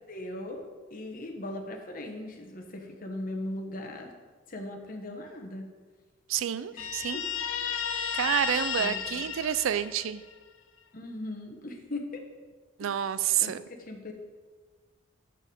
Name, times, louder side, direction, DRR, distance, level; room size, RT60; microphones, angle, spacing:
voice 1, 0.1-4.1 4.5-5.7 6.7-6.9 8.8-9.2 10.9-12.3 13.4-13.5 13.8-14.1, left 1 dB, 45° left, 3 dB, 1.2 m, -39 dB
voice 2, 6.3-7.2 8.1-10.2 12.8-13.6, right 9 dB, 80° right, 15 dB, 0.4 m, -29 dB
Guitar, 6.8-10.3, left 7 dB, 80° left, 0.6 m, -33 dB
7.2 x 6.7 x 5.2 m, 1.4 s
head